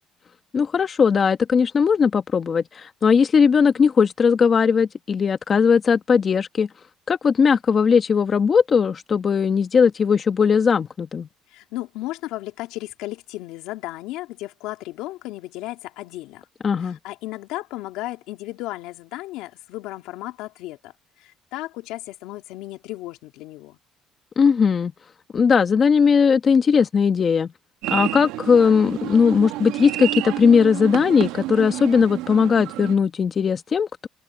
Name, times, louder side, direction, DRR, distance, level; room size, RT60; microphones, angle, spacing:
voice 1, 0.5-6.7 7.1-11.3 16.6-17.0 24.4-24.9 25.3-27.5 27.9-34.1, left 6 dB, 40° left, 1.3 m, -18 dB
voice 2, 11.5-16.4 16.8-23.8, left 17 dB, 85° left, 2.8 m, -34 dB
sound 1, 27.8-32.9, right 16 dB, 90° right, 1.9 m, -30 dB
cardioid pair, 105°, 0 cm